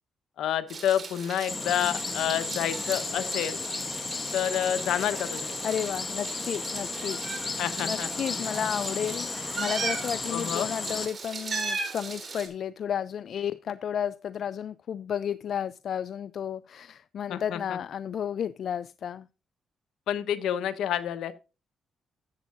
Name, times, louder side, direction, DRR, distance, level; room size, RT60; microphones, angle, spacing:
voice 1, 0.4-3.6 4.3-5.6 7.6-8.1 10.3-10.7 17.3-17.8 20.1-21.3, left 10 dB, 85° left, 1.0 m, -29 dB
Meow, 0.7-12.5, right 4 dB, 50° right, 3.5 m, -38 dB
sound 1, 1.5-11.1, left 4 dB, 35° left, 1.5 m, -34 dB
voice 2, 5.6-7.3 7.8-19.3, left 8 dB, 65° left, 0.3 m, -32 dB
13.0 x 8.2 x 2.5 m
cardioid pair, 75°, 0 cm